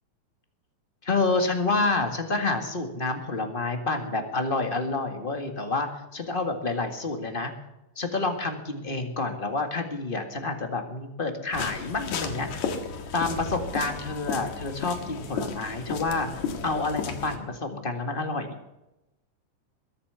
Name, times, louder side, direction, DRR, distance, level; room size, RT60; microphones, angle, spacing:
voice 1, 1.0-7.5 7.9-12.7 13.1-18.5, left 3 dB, 25° left, 5 dB, 1.2 m, -28 dB
sound 1, 11.5-17.4, left 5 dB, 60° left, 2.8 m, -34 dB
22.0 x 8.6 x 6.9 m, 0.92 s
omnidirectional pair, 3.8 m